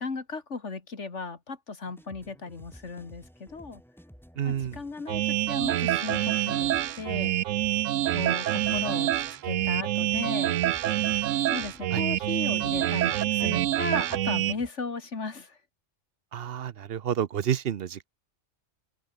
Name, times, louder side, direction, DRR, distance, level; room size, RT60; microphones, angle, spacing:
voice 1, 0.0-3.8 4.4-7.3 8.1-10.6 11.5-15.6, left 4 dB, 70° left, 2.6 m, -36 dB
sound 1, 1.8-14.7, equal, ahead, 5.7 m, -52 dB
voice 2, 4.4-4.8 11.9-12.0 16.3-18.1, right 9 dB, 55° right, 0.9 m, -29 dB
sound 2, 5.1-14.5, right 13 dB, 85° right, 1.0 m, -26 dB
open air
omnidirectional pair, 1.3 m